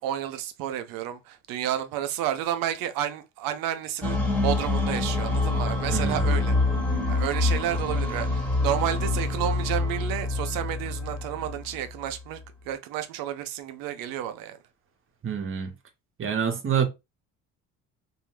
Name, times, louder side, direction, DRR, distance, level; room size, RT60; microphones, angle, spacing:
voice 1, 0.0-6.6 7.1-12.4 12.7-14.6, right 11 dB, 85° right, 0.6 m, -31 dB
sound 1, 4.0-12.1, left 2 dB, 5° left, 1.0 m, -26 dB
voice 2, 5.9-6.2 15.2-15.7 16.2-16.8, right 7 dB, 40° right, 0.8 m, -26 dB
2.7 x 2.0 x 3.1 m
cardioid pair, 95°, 33 cm